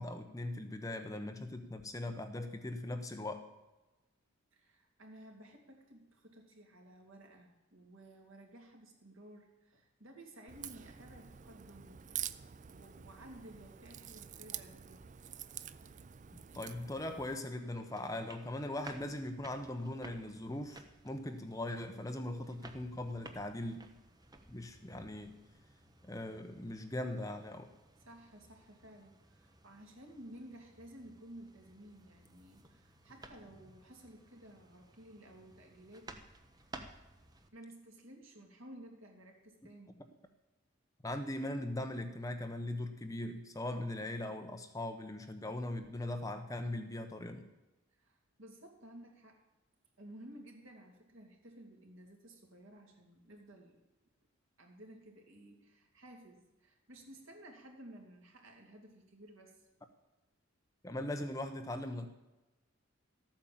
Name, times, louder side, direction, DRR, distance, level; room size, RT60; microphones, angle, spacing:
voice 1, 0.0-3.5 16.5-23.9 24.5-25.4 26.0-27.7 41.0-47.5 60.8-62.1, left 1 dB, 15° left, 6 dB, 0.9 m, -40 dB
voice 2, 4.5-12.3 12.6-15.0 28.0-36.1 37.5-40.0 47.9-49.4 50.0-53.8 54.6-59.7, right 1 dB, 70° right, 1 dB, 2.9 m, -55 dB
Crack, 10.5-17.4, right 10 dB, 35° right, 0.4 m, -47 dB
sound 1, 17.6-37.5, right 2 dB, 20° right, 0.9 m, -56 dB
13.5 x 8.9 x 7.3 m, 1.0 s
head